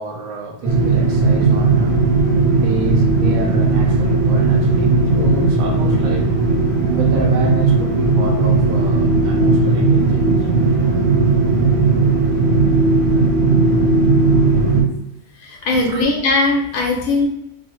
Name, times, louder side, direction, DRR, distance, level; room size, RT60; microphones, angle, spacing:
voice 1, 0.0-2.0 2.5-6.3 6.9-10.2 15.7-16.1, right 2 dB, 85° right, 2 dB, 1.0 m, -29 dB
sound 1, 0.6-14.8, right 3 dB, 35° right, 0.6 m, -16 dB
voice 2, 15.4-17.3, left 2 dB, 85° left, -1 dB, 1.0 m, -19 dB
3.0 x 2.0 x 2.9 m, 0.78 s
omnidirectional pair, 1.4 m